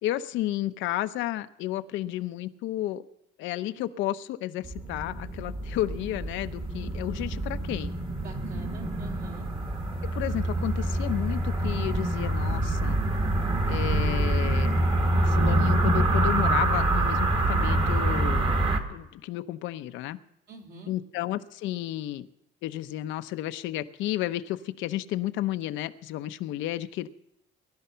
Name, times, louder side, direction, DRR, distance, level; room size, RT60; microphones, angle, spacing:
voice 1, 0.0-3.0 3.4-8.0 10.0-13.0 13.7-14.9 15.2-18.5 18.9-20.2 20.9-22.3 22.6-27.1, left 14 dB, 70° left, 10 dB, 0.8 m, -32 dB
sound 1, 4.6-18.8, right 1 dB, 25° right, 1.6 m, -26 dB
voice 2, 8.2-9.5 20.5-20.9, right 3 dB, 55° right, 2 dB, 3.1 m, -46 dB
20.0 x 11.5 x 5.7 m, 0.84 s
cardioid pair, 155°, 20 cm